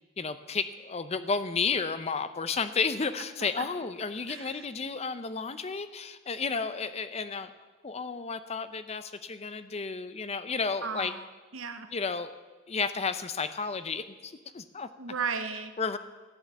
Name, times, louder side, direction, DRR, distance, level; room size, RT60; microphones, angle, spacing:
voice 1, 0.2-7.5 7.8-11.1 11.9-12.3 12.7-14.9 15.8-16.0, left 5 dB, 30° left, 12 dB, 0.6 m, -32 dB
voice 2, 4.3-4.6 10.8-11.3 11.5-11.9 15.0-15.7, right 5 dB, 85° right, 9 dB, 1.0 m, -35 dB
12.5 x 8.9 x 7.1 m, 1.3 s
head